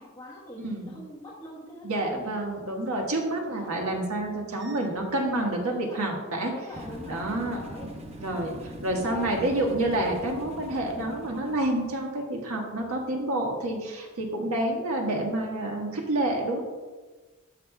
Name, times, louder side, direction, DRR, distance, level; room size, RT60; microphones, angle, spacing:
voice 1, 0.0-2.4 3.5-3.8 4.8-6.1 6.5-7.9 8.9-9.3, left 1 dB, 20° left, -6 dB, 1.2 m, -44 dB
voice 2, 0.6-1.0 1.8-6.5 7.0-7.6 8.2-16.6, right 1 dB, 80° right, 0 dB, 1.6 m, -28 dB
sound 1, 6.7-12.0, equal, 30° right, 0.8 m, -41 dB
13.0 x 6.5 x 2.3 m, 1.3 s
head